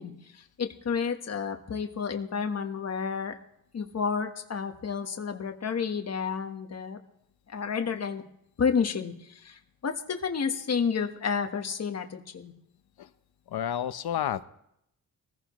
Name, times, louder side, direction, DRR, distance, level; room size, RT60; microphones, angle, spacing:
voice 1, 0.0-3.3 3.7-7.0 7.5-8.2 8.6-12.5, left 6 dB, 45° left, 5 dB, 1.3 m, -31 dB
voice 2, 13.5-14.4, left 10 dB, 80° left, 12 dB, 0.9 m, -30 dB
23.5 x 15.0 x 3.1 m, 0.75 s
wide cardioid pair, 155°, 37 cm